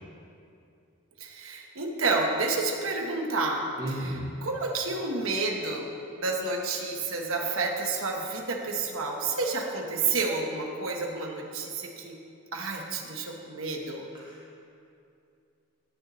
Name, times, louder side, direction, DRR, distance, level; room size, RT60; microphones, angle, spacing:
voice 1, 1.2-12.2 12.5-14.1, right 3 dB, 85° right, 1 dB, 1.1 m, -30 dB
voice 2, 3.8-4.3 14.2-14.5, right 1 dB, 25° right, -8 dB, 2.0 m, -34 dB
17.0 x 6.7 x 3.1 m, 2.5 s
head